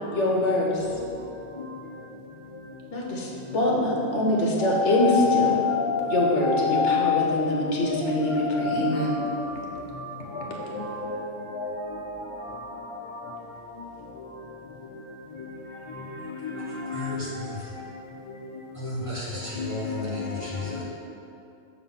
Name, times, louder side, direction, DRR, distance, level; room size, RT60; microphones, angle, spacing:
voice 1, 0.1-0.9 2.9-5.6 6.1-9.1, left 1 dB, 75° left, -2 dB, 1.3 m, -24 dB
voice 2, 4.6-7.2 7.9-9.8 10.4-11.2 11.5-11.8 12.6-13.0 16.4-16.5 16.9-17.1 19.6-19.9, left 6 dB, 55° left, -1 dB, 0.3 m, -28 dB
voice 3, 16.9-17.7 18.7-20.8, left 2 dB, 25° right, -8 dB, 1.6 m, -34 dB
6.6 x 3.8 x 5.7 m, 2.7 s
omnidirectional pair, 1.2 m